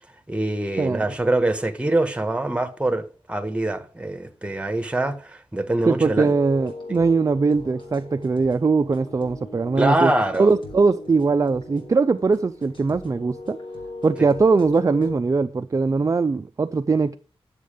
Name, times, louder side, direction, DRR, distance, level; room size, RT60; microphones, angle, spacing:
voice 1, 0.3-6.3 6.9-7.0 9.8-10.5, right 1 dB, 10° right, 1.4 m, -24 dB
voice 2, 5.9-10.1 10.4-13.6 14.0-17.2, right 4 dB, 35° right, 0.5 m, -21 dB
sound 1, 6.1-15.2, left 2 dB, 55° left, 3.9 m, -38 dB
11.0 x 7.5 x 5.0 m
wide cardioid pair, 135°, 10 cm